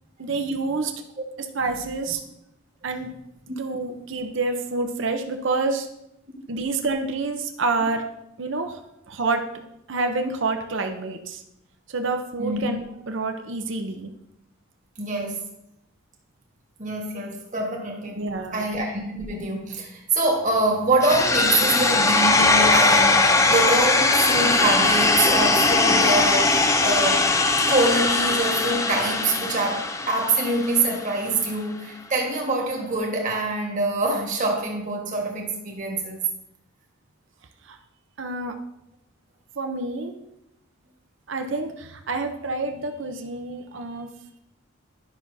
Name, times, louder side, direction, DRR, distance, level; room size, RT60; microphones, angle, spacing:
voice 1, 0.2-0.9 1.5-2.2 2.8-3.1 3.6-5.9 6.5-8.0 8.4-8.8 9.1-9.5 9.9-11.4 11.9-14.1 18.2-18.7 37.6-37.8 38.2-38.6 39.6-40.2 41.3-44.1, right 3 dB, 65° right, 5 dB, 0.7 m, -28 dB
voice 2, 15.0-15.4 16.8-18.2 18.5-27.3 27.7-36.2, right 2 dB, 40° right, 0 dB, 1.5 m, -25 dB
sound 1, 21.0-31.0, left 3 dB, 15° left, 0.4 m, -20 dB
10.5 x 6.0 x 2.7 m, 0.81 s
head